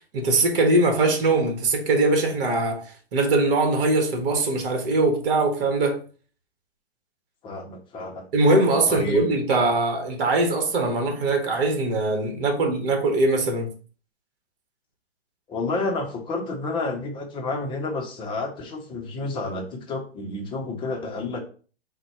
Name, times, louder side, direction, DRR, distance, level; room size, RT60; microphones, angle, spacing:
voice 1, 0.1-6.0 8.3-13.7, right 2 dB, 60° right, 1.2 m, -22 dB
voice 2, 7.4-8.3 8.9-9.2 15.5-21.4, left 3 dB, 15° left, 0.6 m, -30 dB
3.9 x 2.2 x 4.3 m
hypercardioid pair, 125°, 32 cm